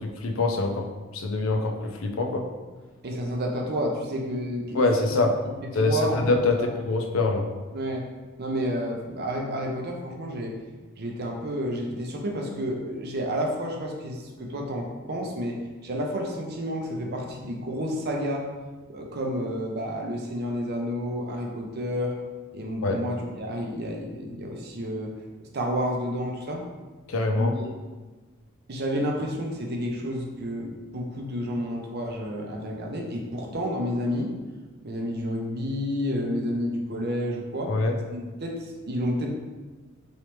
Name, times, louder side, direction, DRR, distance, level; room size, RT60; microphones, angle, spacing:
voice 1, 0.2-0.9 1.1-2.4 4.7-5.3 5.7-7.4 22.8-23.0 27.1-27.5 37.7-37.9, left 3 dB, 75° left, 4 dB, 0.5 m, -24 dB
voice 2, 3.0-4.9 5.8-6.7 7.7-8.1 8.4-10.5 11.0-18.4 18.9-22.2 22.5-25.1 25.5-26.6 27.3-27.7 28.7-34.3 34.8-37.7 38.1-39.3, equal, 50° right, 1 dB, 0.6 m, -30 dB
3.1 x 3.0 x 3.0 m, 1.3 s
head